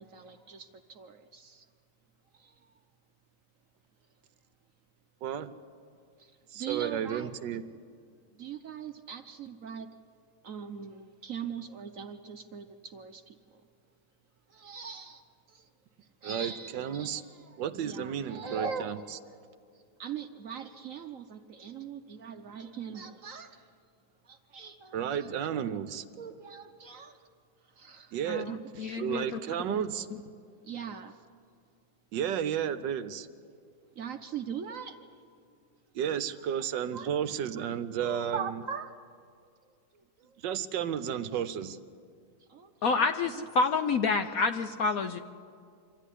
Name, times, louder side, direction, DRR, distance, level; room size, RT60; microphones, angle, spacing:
voice 1, 0.0-1.6 2.3-2.5 6.2-7.3 8.4-9.9 10.4-13.4 14.5-15.2 15.5-15.7 16.2-19.1 20.0-23.7 24.2-25.3 26.2-27.2 27.8-28.1 28.5-29.6 30.6-31.2 34.0-35.0 36.3-36.5 36.9-37.1 38.0-38.9 39.9-40.3 42.4-43.5 44.2-44.5, right 7 dB, 55° right, 7 dB, 1.0 m, -41 dB
voice 2, 5.2-5.5 6.5-7.6 16.2-17.2 17.6-19.0 24.9-26.0 28.1-28.5 28.8-30.1 32.1-33.3 35.9-38.5 40.4-41.8, right 9 dB, 70° right, 12 dB, 1.4 m, -32 dB
voice 3, 28.3-29.2 42.8-45.2, left 4 dB, 65° left, 8 dB, 0.9 m, -28 dB
25.5 x 13.5 x 9.9 m, 2.3 s
omnidirectional pair, 2.1 m